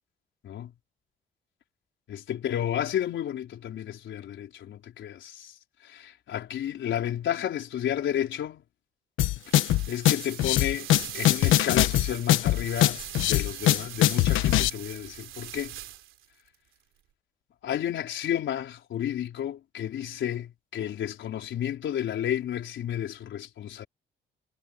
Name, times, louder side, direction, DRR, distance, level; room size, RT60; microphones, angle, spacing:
voice 1, 2.1-8.6 9.9-10.9 11.1-13.0 13.3-15.8 17.6-23.9, left 10 dB, 70° left, 4.3 m, -32 dB
sound 1, 9.2-14.7, left 14 dB, 90° left, 1.2 m, -22 dB
sound 2, 9.4-16.3, right 13 dB, 85° right, 3.1 m, -41 dB
cardioid pair, 90°, 20 cm